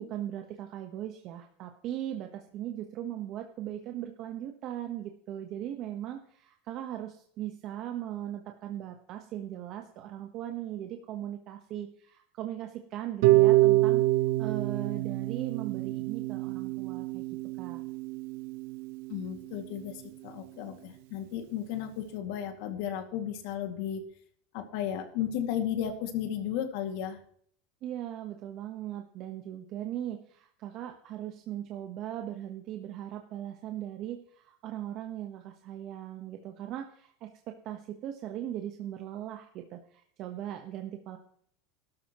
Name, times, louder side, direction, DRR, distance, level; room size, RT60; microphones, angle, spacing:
voice 1, 0.0-14.0 14.4-17.2 17.6-17.8 27.8-41.2, right 11 dB, 45° right, 4 dB, 1.1 m, -39 dB
Harp, 13.2-19.3, right 18 dB, 65° right, 0.8 m, -26 dB
voice 2, 19.1-24.0 24.5-27.2, left 10 dB, 65° left, 5 dB, 2.2 m, -34 dB
16.0 x 13.0 x 3.1 m, 0.62 s
supercardioid pair, 155°, 0 cm